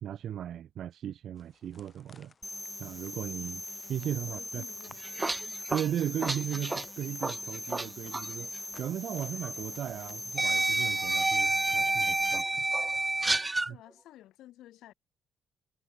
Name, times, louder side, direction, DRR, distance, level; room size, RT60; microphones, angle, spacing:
voice 1, 0.0-2.3 2.8-3.6 3.9-4.6 5.7-12.7 13.7-13.8, right 10 dB, 65° right, 0.7 m, -36 dB
sound 1, 1.3-12.9, left 4 dB, 35° left, 6.6 m, -61 dB
sound 2, 2.4-12.4, left 1 dB, 10° left, 2.1 m, -41 dB
voice 2, 3.9-5.4 13.7-14.9, left 14 dB, 85° left, 6.9 m, -53 dB
sound 3, 4.8-7.9 8.1-8.3 9.4-9.5 10.4-13.7, right 2 dB, 20° right, 0.6 m, -29 dB
cardioid pair, 90°, 0 cm